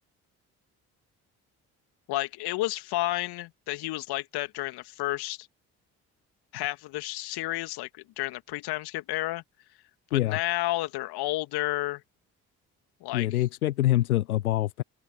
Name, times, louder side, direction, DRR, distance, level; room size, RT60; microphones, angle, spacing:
voice 1, 2.1-5.5 6.5-7.9 8.2-9.4 10.1-12.0 13.0-13.4, left 18 dB, 60° left, 2.3 m, -31 dB
voice 2, 13.1-14.8, left 14 dB, 80° left, 1.0 m, -25 dB
open air
figure-of-eight pair, 45°, 43 cm